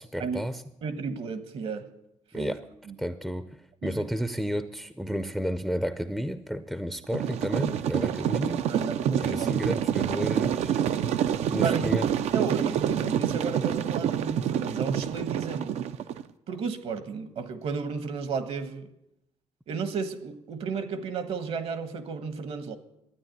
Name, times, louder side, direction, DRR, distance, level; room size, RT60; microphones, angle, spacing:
voice 1, 0.0-0.6 2.3-2.6 3.0-8.6 9.2-10.8 11.5-12.1, equal, ahead, 0.5 m, -32 dB
voice 2, 0.8-1.9 2.3-2.6 2.9-3.0 3.8-4.1 8.7-9.8 11.6-15.7 16.5-18.9 19.7-22.8, right 5 dB, 60° right, 1.4 m, -33 dB
sound 1, 7.1-16.2, right 9 dB, 80° right, 0.6 m, -27 dB
12.5 x 9.4 x 9.1 m
cardioid pair, 150°, 11 cm